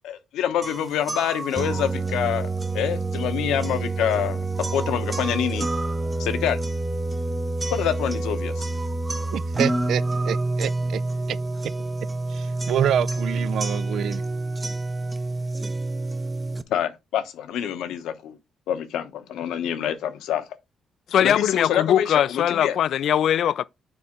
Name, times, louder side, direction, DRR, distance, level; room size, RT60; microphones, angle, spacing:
voice 1, 0.0-2.5 2.7-4.4 4.7-5.7 6.2-6.6 7.7-8.7 16.7-18.4 18.7-20.4 21.2-22.8, left 10 dB, 85° left, 0.9 m, -26 dB
sound 1, 0.6-16.6, right 2 dB, 20° right, 0.6 m, -27 dB
voice 2, 9.3-11.0 11.3-11.4 12.3-14.2, right 10 dB, 70° right, 0.3 m, -27 dB
voice 3, 21.1-23.6, left 10 dB, 70° left, 0.3 m, -21 dB
6.8 x 4.2 x 3.7 m
cardioid pair, 90°, 0 cm